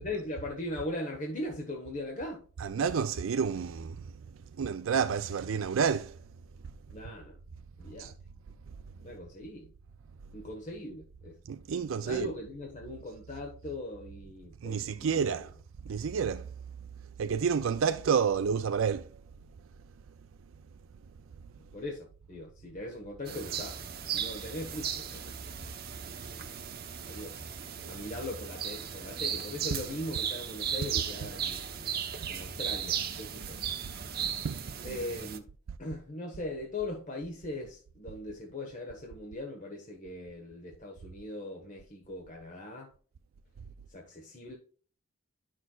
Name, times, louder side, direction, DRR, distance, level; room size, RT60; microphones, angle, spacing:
voice 1, 0.0-2.4 6.9-7.4 7.8-8.1 9.0-9.7 10.3-11.4 12.0-15.5 17.7-17.8 21.7-23.8 24.1-25.4 27.0-27.5 27.8-31.6 32.3-34.0 34.8-35.5 35.8-42.9 43.9-44.5, left 1 dB, 40° left, 1.3 m, -40 dB
voice 2, 2.6-4.1 4.6-6.2 8.0-8.1 11.5-12.3 14.6-15.5 15.9-16.5 17.2-19.1 27.8-28.0 34.4-34.6, right 6 dB, 75° right, 0.4 m, -29 dB
sound 1, 23.2-35.4, right 8 dB, 50° right, 0.8 m, -36 dB
11.0 x 6.3 x 2.4 m
head